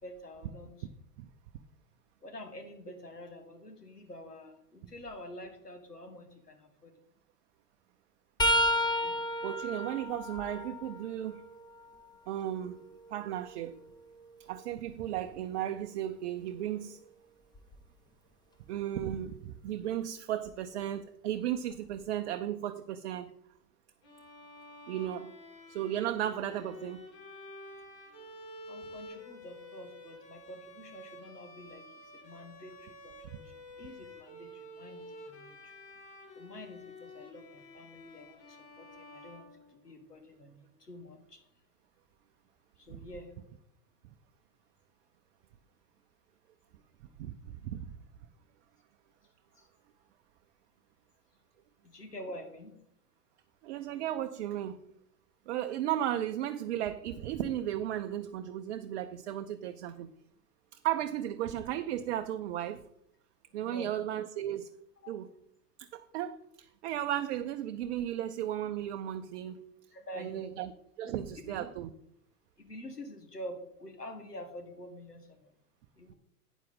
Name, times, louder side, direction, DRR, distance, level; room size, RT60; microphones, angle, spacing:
voice 1, 0.0-0.9 2.2-7.0 9.0-9.2 28.7-35.7 36.4-41.4 42.8-43.3 49.6-49.7 51.8-52.7 63.6-64.0 65.0-65.1 69.9-70.6 71.0-71.7 72.6-75.5 76.0-76.1, left 1 dB, 90° left, 1.5 m, -47 dB
sound 1, 8.4-12.2 12.7-14.6 17.5-17.7 19.0-19.1 20.5-20.6, equal, 10° left, 1.0 m, -33 dB
voice 2, 9.4-11.4 12.3-12.8 13.1-13.8 14.4-17.0 18.7-23.3 24.9-25.3 25.7-27.0 42.9-43.0 47.2-48.0 53.6-54.8 55.5-60.1 60.7-62.8 63.5-64.7 65.1-65.3 65.8-69.6 70.2-70.7 71.0-71.9, right 11 dB, 50° right, 0.7 m, -35 dB
Bowed string instrument, 24.0-40.1, left 1 dB, 35° left, 2.4 m, -50 dB
12.0 x 9.1 x 3.7 m
figure-of-eight pair, 90°, 46 cm